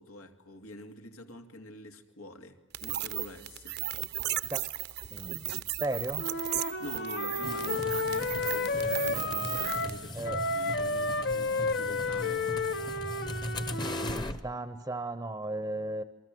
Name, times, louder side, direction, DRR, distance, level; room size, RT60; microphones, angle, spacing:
voice 1, 0.0-3.8 6.6-12.7, left 1 dB, 85° left, 2.6 m, -46 dB
sound 1, 2.7-10.0, right 13 dB, 50° right, 0.8 m, -36 dB
voice 2, 5.1-5.5 5.8-6.2 10.1-10.4 14.0-16.0, right 2 dB, 15° right, 0.9 m, -35 dB
Wind instrument woodwind instrument, 6.2-10.0 10.2-14.2, left 3 dB, 55° left, 1.1 m, -32 dB
sound 2, 7.4-14.4, left 1 dB, 20° left, 1.1 m, -39 dB
28.0 x 23.5 x 7.8 m
head